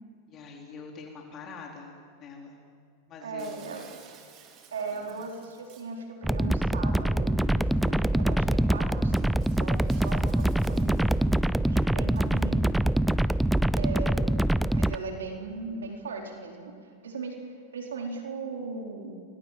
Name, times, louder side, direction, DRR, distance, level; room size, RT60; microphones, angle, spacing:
voice 1, 0.3-2.6 3.1-3.7 4.9-5.2, left 4 dB, 35° left, 0 dB, 4.3 m, -45 dB
voice 2, 3.2-3.9 4.7-11.1 11.7-12.8 13.7-14.4 14.7-19.2, right 4 dB, 90° right, 2 dB, 4.2 m, -38 dB
Shatter, 3.4-6.0 7.8-7.9 8.4-8.5 9.1-11.3 12.1-12.5, right 7 dB, 40° right, 4.4 m, -55 dB
sound 1, 6.2-15.0, right 1 dB, 5° right, 0.6 m, -24 dB
29.5 x 23.0 x 7.6 m, 2.3 s
hypercardioid pair, 110°, 0 cm